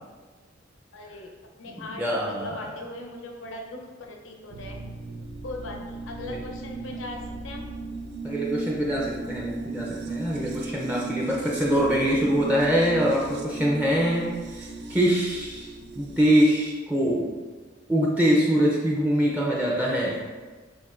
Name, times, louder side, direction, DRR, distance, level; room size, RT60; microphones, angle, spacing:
voice 1, 0.9-1.3 1.6-4.8 5.4-7.6, left 1 dB, 85° left, 1 dB, 0.7 m, -39 dB
voice 2, 1.7-2.7 6.2-6.4 8.2-17.3 17.9-20.2, equal, 10° right, -4 dB, 0.5 m, -24 dB
sound 1, 4.5-16.5, right 3 dB, 60° right, 0.5 m, -37 dB
7.0 x 2.6 x 2.5 m, 1.4 s
head